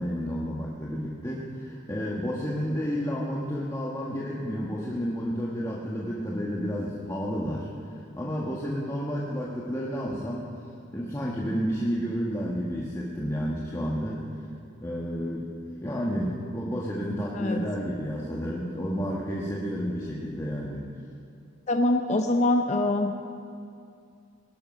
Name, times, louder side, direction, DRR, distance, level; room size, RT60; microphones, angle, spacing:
voice 1, 0.0-7.7 8.2-10.5 10.9-14.3 14.8-15.5 15.8-20.9, equal, 15° left, -4 dB, 1.3 m, -31 dB
voice 2, 21.7-23.3, left 2 dB, 35° left, 5 dB, 0.6 m, -24 dB
19.0 x 11.5 x 5.3 m, 2.4 s
head